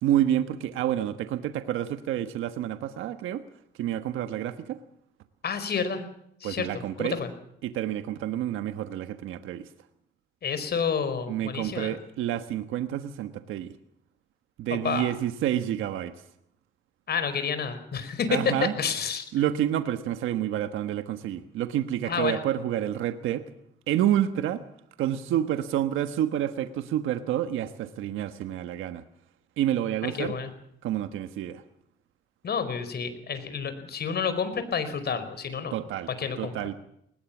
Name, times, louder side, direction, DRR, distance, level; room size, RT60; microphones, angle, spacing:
voice 1, 0.0-3.4 3.8-4.8 6.4-7.2 7.6-9.7 11.3-13.7 14.6-16.1 18.3-18.7 19.3-23.5 23.9-24.6 25.0-29.0 29.6-30.3 30.8-31.6 35.7-36.1 36.4-36.7, right 11 dB, 85° right, 9 dB, 1.3 m, -28 dB
voice 2, 5.4-6.0 6.4-6.7 7.0-7.3 10.4-12.0 14.7-15.1 17.1-19.3 22.0-22.4 30.0-30.5 32.4-35.7 36.2-36.6, left 6 dB, 55° left, 11 dB, 4.8 m, -29 dB
21.0 x 20.0 x 7.3 m, 0.74 s
cardioid pair, 90°, 20 cm